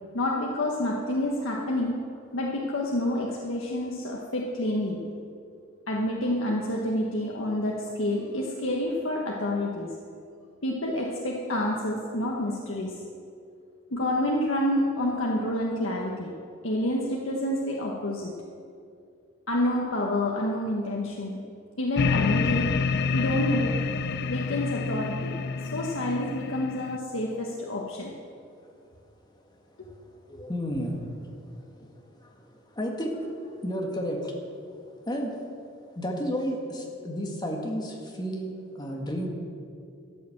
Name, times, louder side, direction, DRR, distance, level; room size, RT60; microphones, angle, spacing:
voice 1, 0.1-1.9 2.3-5.0 5.9-9.9 10.6-13.0 13.9-16.3 16.6-18.3 19.5-21.4 21.8-22.7 23.1-23.7 24.3-25.3 25.7-28.1 29.8-29.9, left 1 dB, 75° left, -2 dB, 1.3 m, -28 dB
sound 1, 22.0-27.0, left 4 dB, 55° left, 0.4 m, -28 dB
voice 2, 29.5-35.3 36.0-39.3, equal, 20° left, 1 dB, 1.8 m, -33 dB
13.5 x 7.7 x 7.3 m, 2.4 s
head